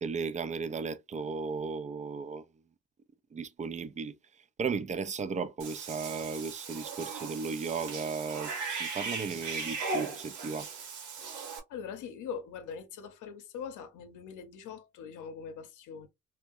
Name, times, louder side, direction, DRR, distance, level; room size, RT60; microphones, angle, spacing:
voice 1, 0.0-2.5 3.3-4.2 4.6-8.5 8.8-10.7, right 5 dB, 25° right, 0.4 m, -35 dB
Cat / Bathtub (filling or washing), 5.6-11.6, right 4 dB, 90° right, 1.0 m, -38 dB
voice 2, 11.7-16.1, left 6 dB, 80° left, 0.7 m, -42 dB
3.3 x 2.1 x 2.5 m
cardioid pair, 90°, 30 cm